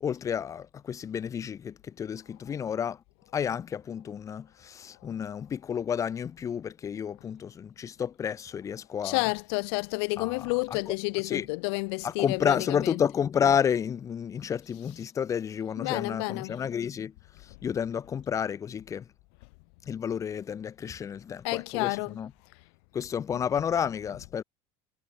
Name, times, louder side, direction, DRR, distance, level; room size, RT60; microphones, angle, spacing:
voice 1, 0.0-3.0 3.3-9.2 10.2-10.9 11.2-11.5 12.0-17.1 17.4-19.1 19.9-22.3 22.9-24.4, left 8 dB, 20° left, 1.5 m, -31 dB
voice 2, 9.0-13.0 15.8-16.6 21.4-22.2 23.3-23.4, left 31 dB, 70° left, 5.3 m, -30 dB
cardioid pair, 160°, 14 cm